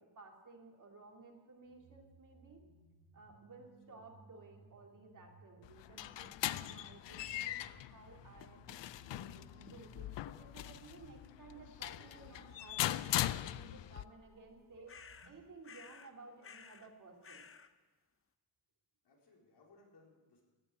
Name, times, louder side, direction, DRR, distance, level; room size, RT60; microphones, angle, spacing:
voice 1, 0.0-2.6 3.1-8.6 9.0-15.0 15.2-17.5, right 3 dB, 45° right, 1 dB, 2.7 m, -56 dB
sound 1, 1.6-15.4, right 4 dB, 80° right, 4.9 m, -64 dB
voice 2, 3.6-4.0 19.0-20.4, left 3 dB, 65° left, -1 dB, 4.1 m, -65 dB
sound 2, 5.6-14.0, left 14 dB, 85° left, 0.6 m, -40 dB
sound 3, 14.9-15.3 15.6-16.1 16.4-16.9 17.2-17.7, left 6 dB, 30° left, 0.7 m, -54 dB
16.5 x 9.1 x 8.7 m, 1.3 s
wide cardioid pair, 145°, 42 cm